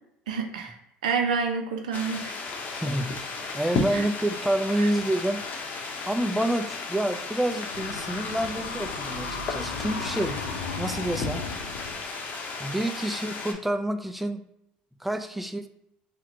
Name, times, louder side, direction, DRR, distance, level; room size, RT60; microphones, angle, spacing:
voice 1, 0.3-0.8 1.0-2.4 3.9-4.0 4.8-4.9, right 5 dB, 90° right, 4 dB, 0.4 m, -28 dB
sound 1, 1.9-13.5, left 4 dB, 45° left, 0.6 m, -34 dB
voice 2, 2.7-5.4 6.0-10.4 10.8-11.4 12.6-14.4 15.0-15.7, right 1 dB, 5° right, 7 dB, 0.3 m, -28 dB
sound 2, 7.7-12.0, left 4 dB, 90° left, 0.3 m, -36 dB
2.9 x 2.1 x 3.6 m, 0.78 s
hypercardioid pair, 75°, 4 cm